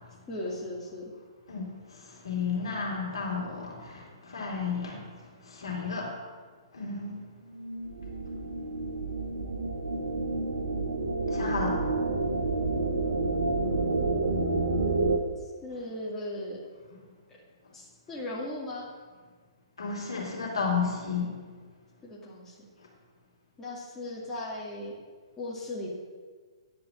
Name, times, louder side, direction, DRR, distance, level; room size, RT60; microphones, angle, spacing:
voice 1, 0.3-1.1 15.4-16.6 17.7-18.9 22.0-22.6 23.6-24.9 25.4-25.9, left 1 dB, 15° left, -6 dB, 2.4 m, -37 dB
voice 2, 1.5-5.0 5.4-6.1 6.7-7.2 11.3-11.8 19.8-21.4, left 5 dB, 70° left, -2 dB, 3.0 m, -32 dB
sound 1, 7.6-15.2, right 3 dB, 65° right, 1.1 m, -29 dB
10.5 x 4.8 x 7.5 m, 1.5 s
figure-of-eight pair, 120°, 3 cm